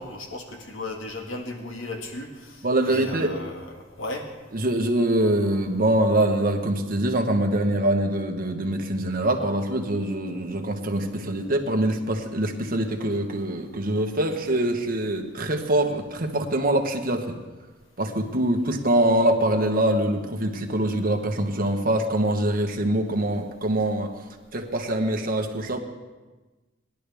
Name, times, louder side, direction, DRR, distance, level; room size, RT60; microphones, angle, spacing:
voice 1, 0.0-4.3, left 2 dB, 75° left, 2 dB, 1.7 m, -36 dB
voice 2, 2.6-3.3 4.5-17.4 18.0-24.2 24.5-25.8, right 1 dB, 45° right, 4 dB, 1.2 m, -24 dB
19.5 x 11.5 x 3.5 m, 1.2 s
head